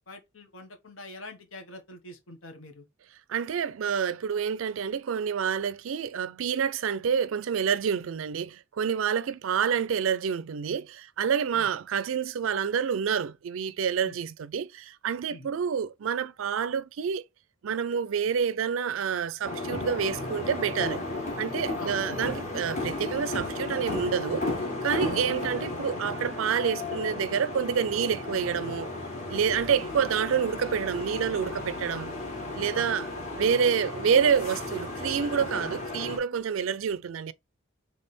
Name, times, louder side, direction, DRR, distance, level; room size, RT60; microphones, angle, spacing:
voice 1, 0.0-2.9 11.5-11.8 14.0-14.1 15.3-15.5 21.8-22.0 25.1-25.3 32.7-32.9, left 2 dB, 85° left, 1.3 m, -44 dB
voice 2, 3.3-17.2 17.6-21.0 21.4-24.5 24.8-28.9 29.3-32.1 32.5-33.0 33.4-37.3, right 7 dB, 85° right, 0.4 m, -28 dB
sound 1, 19.4-36.2, left 2 dB, 35° left, 1.4 m, -34 dB
3.4 x 3.4 x 4.2 m
head